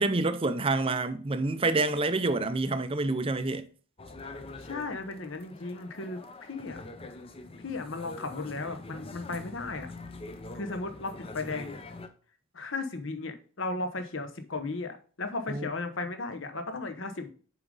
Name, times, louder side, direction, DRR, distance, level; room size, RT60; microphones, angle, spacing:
voice 1, 0.0-3.6 15.5-15.7, right 2 dB, 25° right, 0.5 m, -27 dB
sound 1, 4.0-12.1, left 2 dB, 25° left, 0.6 m, -44 dB
voice 2, 4.6-6.8 7.6-9.9 10.5-11.8 12.5-17.3, left 3 dB, 60° left, 1.0 m, -35 dB
7.0 x 4.9 x 3.8 m
head